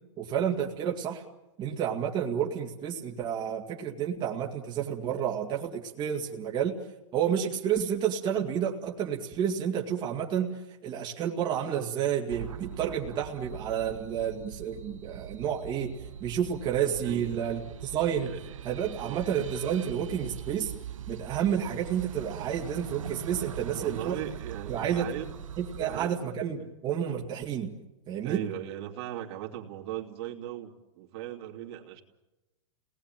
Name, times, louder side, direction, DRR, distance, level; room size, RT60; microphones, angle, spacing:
voice 1, 0.2-1.2 1.6-6.7 7.1-18.3 18.6-20.7 21.1-24.2 24.7-25.1 25.6-27.7 28.1-28.5, right 8 dB, 30° right, -1 dB, 2.2 m, -30 dB
sound 1, 12.3-26.1, right 9 dB, 85° right, 1.1 m, -42 dB
voice 2, 17.0-17.6 18.2-18.6 19.0-19.2 23.7-25.3 25.8-26.8 28.2-32.0, right 12 dB, 55° right, 2 dB, 3.0 m, -39 dB
29.0 x 19.5 x 9.1 m, 1.1 s
hypercardioid pair, 140°, 16 cm